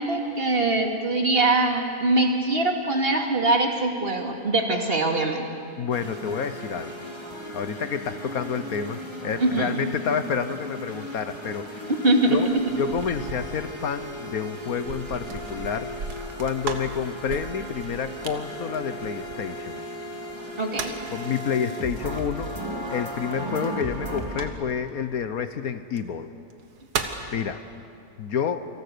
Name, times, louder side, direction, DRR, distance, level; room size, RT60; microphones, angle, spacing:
voice 1, 0.0-5.5 9.4-9.7 12.0-12.6 20.6-20.9, right 2 dB, 35° right, 2 dB, 2.6 m, -23 dB
voice 2, 5.8-7.0 7.5-11.9 12.3-12.5 12.8-15.9 16.4-19.8 21.1-22.5 22.9-26.3 27.3-27.6 28.2-28.7, left 7 dB, 65° left, 11 dB, 1.4 m, -29 dB
sound 1, 5.9-24.5, equal, 15° right, 2.8 m, -36 dB
sound 2, 12.3-19.7 20.4-21.2 23.6-24.9 25.8-26.0 26.5-27.3, right 5 dB, 85° right, 2.0 m, -37 dB
28.5 x 26.0 x 6.8 m, 2.5 s
omnidirectional pair, 1.7 m